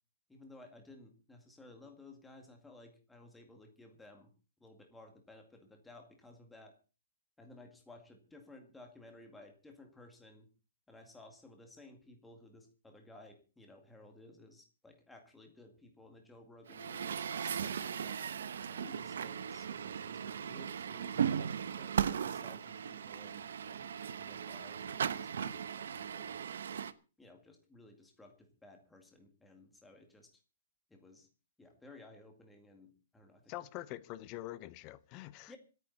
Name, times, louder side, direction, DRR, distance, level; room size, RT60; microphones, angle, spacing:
voice 1, 0.3-4.3 4.6-6.8 7.4-10.5 10.9-21.2 21.7-23.9 24.2-26.4 27.2-30.3 30.9-31.3 31.6-33.8 35.5-35.6, left 2 dB, 5° left, 2.0 m, -57 dB
Truck, 16.7-26.9, right 8 dB, 65° right, 1.0 m, -37 dB
voice 2, 33.5-35.5, left 16 dB, 20° left, 0.6 m, -45 dB
26.0 x 9.4 x 4.1 m
hypercardioid pair, 175°, 0 cm